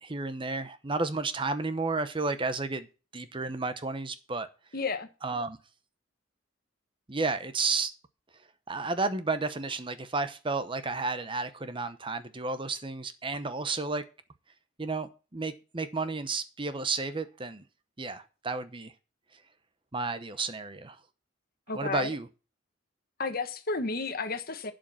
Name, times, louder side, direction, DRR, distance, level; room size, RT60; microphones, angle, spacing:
voice 1, 0.0-2.9 3.1-4.5 5.2-5.6 7.1-7.9 8.7-14.0 14.8-17.6 18.0-18.9 19.9-21.0 21.7-22.3, right 3 dB, 25° right, 0.8 m, -32 dB
voice 2, 4.7-5.1 21.7-22.1 23.2-24.7, left 3 dB, 50° left, 1.3 m, -32 dB
11.5 x 5.2 x 6.9 m
head